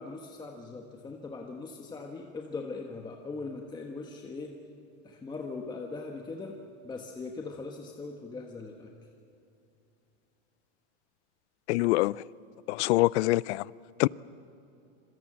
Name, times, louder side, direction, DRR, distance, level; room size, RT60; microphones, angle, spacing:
voice 1, 0.0-4.5 5.0-6.6 6.8-8.9, left 3 dB, 10° left, 1.3 m, -40 dB
voice 2, 11.7-12.1 12.7-13.6 14.0-14.1, left 19 dB, 70° left, 0.6 m, -24 dB
26.5 x 24.5 x 7.6 m
supercardioid pair, 155°, 35 cm